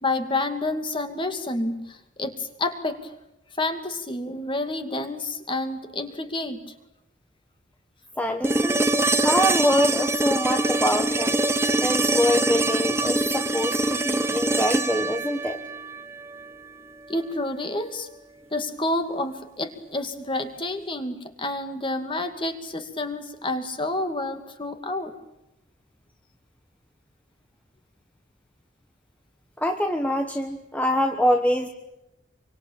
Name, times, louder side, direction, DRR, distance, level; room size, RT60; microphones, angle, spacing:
voice 1, 0.0-3.1 3.6-6.6 17.1-18.1 18.5-25.1, left 2 dB, 25° left, 7 dB, 2.5 m, -29 dB
voice 2, 8.2-8.8 9.2-11.4 11.8-15.6 29.6-31.7, equal, 5° left, 4 dB, 1.2 m, -24 dB
sound 1, 8.4-16.5 18.6-18.7, right 2 dB, 15° right, 1.0 m, -24 dB
26.5 x 24.5 x 8.9 m, 0.92 s
head